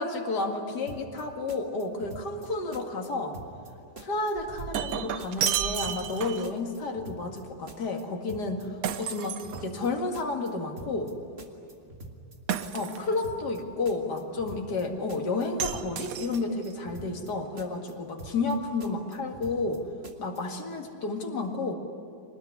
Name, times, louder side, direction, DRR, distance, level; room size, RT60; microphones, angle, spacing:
voice 1, 0.0-3.4 4.0-11.1 12.7-19.8 20.2-21.7, left 3 dB, 65° left, 2 dB, 2.7 m, -31 dB
sound 1, 0.9-1.2 1.5-2.5 2.7-3.1 3.3-3.7 4.0-4.9 5.2-5.5 5.8-6.2 6.4-7.4 7.7-8.0 8.3-8.6 8.9-9.9 10.1-10.5 10.8-11.1 11.4-12.4 12.6-13.0 13.2-13.6 13.8-14.8 15.1-15.4 15.7-16.1 16.3-17.3 17.6-17.9 18.2-18.5 18.8-19.8 20.0-20.4, right 2 dB, 35° right, 2.2 m, -45 dB
Shatter, 4.3-6.6 8.8-10.1 12.5-13.3 15.6-16.7, right 9 dB, 60° right, 1.1 m, -32 dB
25.0 x 20.0 x 9.9 m, 2.3 s
omnidirectional pair, 1.9 m